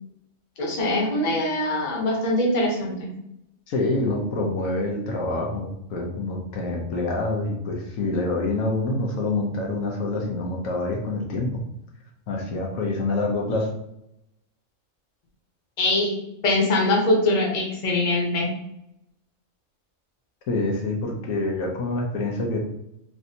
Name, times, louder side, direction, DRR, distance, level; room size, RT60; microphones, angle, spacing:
voice 1, 0.6-3.1 15.8-16.1 16.4-18.5, left 2 dB, 40° left, -1 dB, 0.8 m, -22 dB
voice 2, 3.7-11.6 12.3-13.7 20.5-22.6, left 2 dB, 90° left, 0 dB, 1.1 m, -26 dB
3.3 x 2.5 x 2.7 m, 0.80 s
omnidirectional pair, 1.4 m